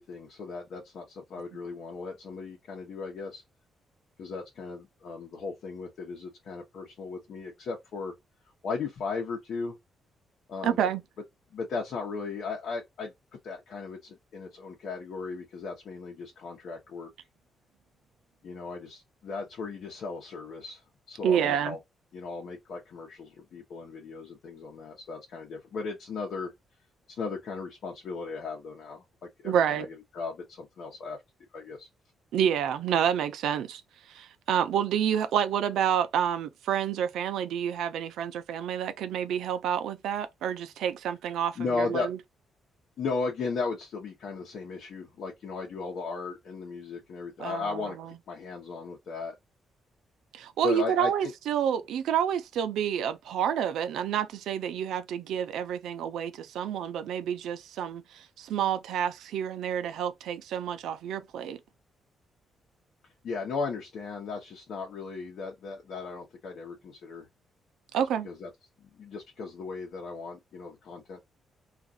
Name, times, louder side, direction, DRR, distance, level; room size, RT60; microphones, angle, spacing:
voice 1, 0.0-3.4 4.2-8.1 8.6-9.8 10.5-10.8 11.5-13.1 13.4-17.1 18.4-20.8 21.1-21.8 22.1-26.5 27.1-31.2 31.5-31.9 41.6-42.1 43.0-48.0 48.3-49.4 50.6-51.3 63.2-67.3 68.2-68.5 68.8-71.2, left 4 dB, 65° left, 0.9 m, -36 dB
voice 2, 10.6-11.0 21.2-21.8 29.4-29.9 32.3-33.8 34.1-42.2 47.4-48.1 50.3-61.6 67.9-68.3, right 9 dB, 90° right, 0.5 m, -29 dB
2.5 x 2.3 x 3.8 m
cardioid pair, 125°, 0 cm